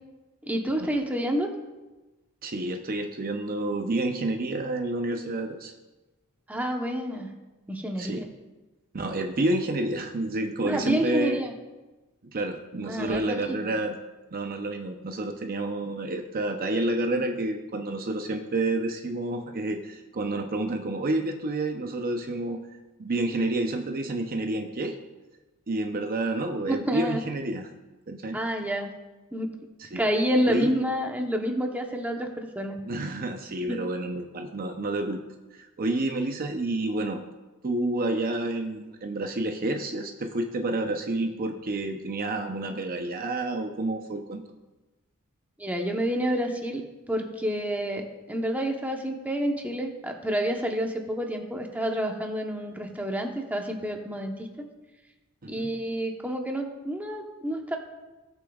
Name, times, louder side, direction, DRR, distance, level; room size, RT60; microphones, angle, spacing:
voice 1, 0.4-1.5 6.5-7.3 7.7-8.3 10.6-11.5 12.8-13.6 26.7-27.2 28.3-28.9 29.3-29.5 29.9-32.8 33.6-33.8 45.6-46.8 47.1-54.5 55.5-57.8, equal, 5° right, 2 dB, 0.9 m, -29 dB
voice 2, 2.4-5.7 8.0-8.3 8.9-11.4 12.2-14.0 14.3-22.6 23.0-25.0 25.7-27.7 28.1-28.4 29.8-30.0 30.4-30.7 32.8-35.2 35.5-37.2 37.6-44.4 55.4-55.7, right 2 dB, 40° right, 5 dB, 0.6 m, -29 dB
19.0 x 6.9 x 2.4 m, 1.1 s
head